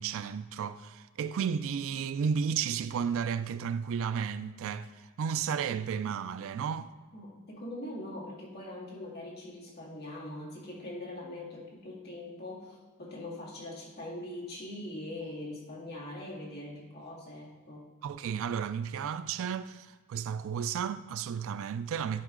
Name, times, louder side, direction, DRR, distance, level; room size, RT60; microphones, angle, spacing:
voice 1, 0.0-6.9 18.0-22.2, right 7 dB, 65° right, 0.3 m, -33 dB
voice 2, 7.1-17.8, left 1 dB, 50° left, 2.2 m, -42 dB
11.0 x 4.6 x 3.7 m
head